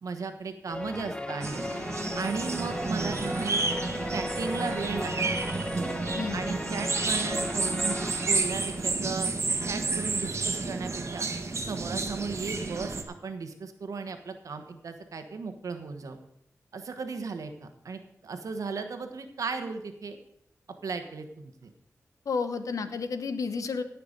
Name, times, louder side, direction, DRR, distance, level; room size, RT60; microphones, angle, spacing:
voice 1, 0.0-1.6 2.1-3.6 4.1-5.3 6.3-9.3 9.6-11.3 11.6-16.2 16.7-20.2 20.8-21.7, right 4 dB, 80° right, 7 dB, 1.2 m, -36 dB
sound 1, 0.7-9.2, left 1 dB, 15° left, 1.0 m, -36 dB
sound 2, 1.4-13.0, right 3 dB, 55° right, 1.4 m, -31 dB
voice 2, 22.3-23.8, left 5 dB, 85° left, 10 dB, 1.0 m, -31 dB
17.0 x 5.9 x 5.3 m, 0.75 s
cardioid pair, 60°, 6 cm